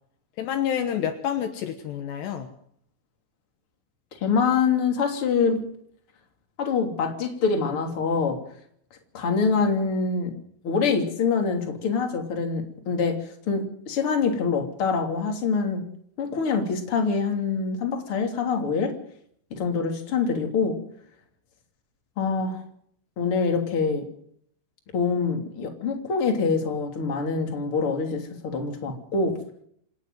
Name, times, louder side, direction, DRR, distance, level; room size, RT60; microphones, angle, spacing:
voice 1, 0.4-2.5, left 9 dB, 70° left, 8 dB, 3.3 m, -28 dB
voice 2, 4.2-5.6 6.6-8.4 9.1-10.4 10.6-15.9 16.2-18.9 19.5-20.8 22.2-22.6 23.2-24.1 24.9-29.4, left 5 dB, 35° left, 4 dB, 3.3 m, -25 dB
27.0 x 10.5 x 9.3 m, 0.66 s
omnidirectional pair, 5.3 m